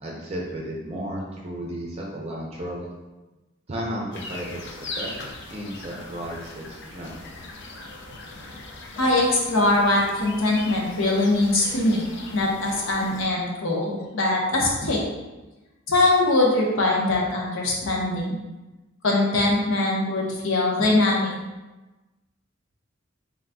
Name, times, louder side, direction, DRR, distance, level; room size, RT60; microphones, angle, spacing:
voice 1, 0.0-2.9 3.7-5.1 5.5-7.1, equal, 30° right, -3 dB, 0.5 m, -33 dB
sound 1, 4.1-13.3, left 2 dB, 60° left, 0.5 m, -39 dB
voice 2, 9.0-12.0 12.3-15.1 15.9-18.4 19.0-21.3, left 2 dB, 75° left, -2 dB, 0.9 m, -22 dB
3.9 x 3.8 x 2.3 m, 1.1 s
head